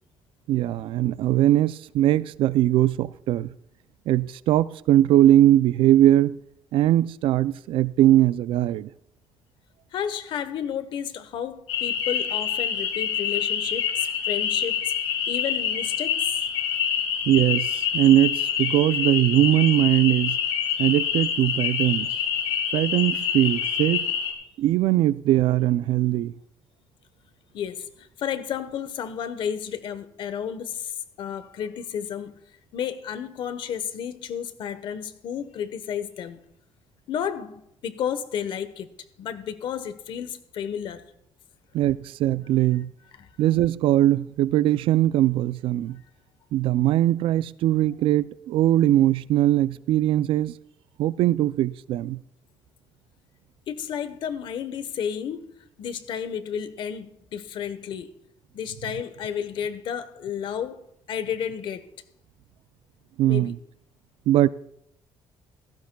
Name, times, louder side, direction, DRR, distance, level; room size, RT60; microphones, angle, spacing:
voice 1, 0.5-3.5 4.1-6.4 6.7-8.9 17.3-20.4 20.8-22.1 22.7-24.1 24.6-26.3 41.7-42.9 43.4-46.0 46.5-50.6 51.0-52.2 63.2-63.6 64.3-64.5, right 13 dB, 70° right, 0.4 m, -21 dB
voice 2, 9.9-14.9 15.3-16.4 27.5-30.9 31.2-32.4 32.7-36.4 37.1-38.9 39.2-41.0 43.2-43.3 53.7-55.5 55.8-58.1 58.5-60.8 61.1-61.9 63.2-63.5, left 8 dB, 60° left, 1.1 m, -32 dB
sound 1, 11.7-24.3, left 8 dB, 85° left, 2.8 m, -26 dB
16.0 x 15.0 x 2.3 m
cardioid pair, 135°, 9 cm